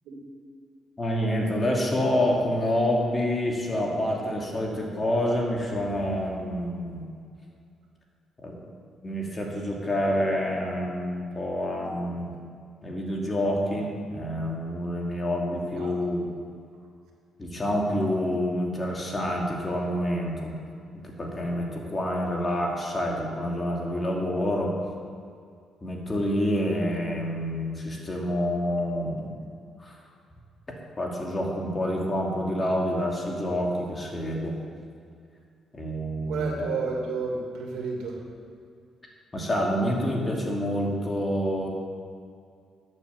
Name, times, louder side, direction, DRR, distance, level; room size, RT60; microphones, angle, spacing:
voice 1, 1.0-7.1 8.4-8.6 9.0-12.3 12.8-16.3 17.4-20.5 20.9-24.7 25.8-29.4 29.8-30.0 31.0-34.6 35.7-36.5 39.3-41.7, equal, 25° left, -1 dB, 2.7 m, -27 dB
voice 2, 36.3-38.2, right 4 dB, 85° right, -1 dB, 2.5 m, -31 dB
11.5 x 7.6 x 7.6 m, 2.3 s
cardioid pair, 90°, 0 cm